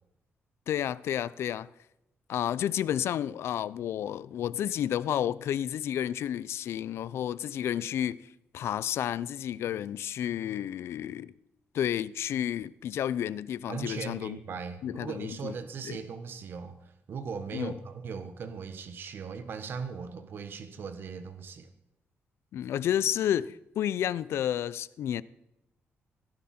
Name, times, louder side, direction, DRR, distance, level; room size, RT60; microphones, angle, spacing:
voice 1, 0.7-1.7 2.3-8.2 8.5-11.3 11.7-14.4 14.8-15.5 15.8-16.0 17.5-17.7 22.5-25.2, left 10 dB, 75° left, 0.5 m, -31 dB
voice 2, 13.7-21.7, right 5 dB, 55° right, 1.2 m, -39 dB
17.0 x 11.0 x 4.3 m
cardioid pair, 150°, 4 cm